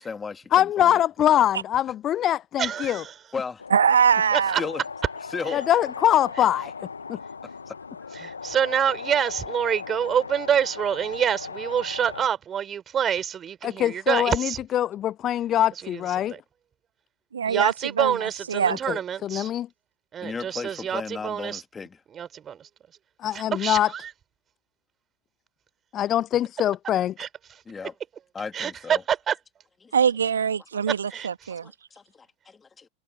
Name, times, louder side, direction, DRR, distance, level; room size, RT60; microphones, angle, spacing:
voice 1, 0.0-0.9 3.3-3.6 4.6-4.8 5.3-5.6 7.7-8.1 20.2-22.0 27.7-27.9 28.3-29.0 29.8-29.9 31.6-32.9, left 5 dB, 15° left, 3.0 m, -35 dB
voice 2, 0.5-3.0 5.5-6.7 7.1-7.2 13.6-16.4 18.9-19.7 23.2-23.9 25.9-27.1, left 11 dB, 30° left, 0.5 m, -23 dB
voice 3, 2.6-3.1 4.3-4.6 8.1-14.6 15.9-16.4 17.4-19.5 20.1-21.6 22.1-22.7 23.3-24.1 27.2-27.6 28.5-29.4 30.9-31.3, right 8 dB, 25° right, 5.2 m, -27 dB
sound 1, 3.6-12.3, left 5 dB, 75° left, 2.0 m, -38 dB
voice 4, 3.7-4.6 17.3-18.8 29.9-31.7, right 7 dB, 70° right, 1.9 m, -23 dB
figure-of-eight pair, 90°, 0 cm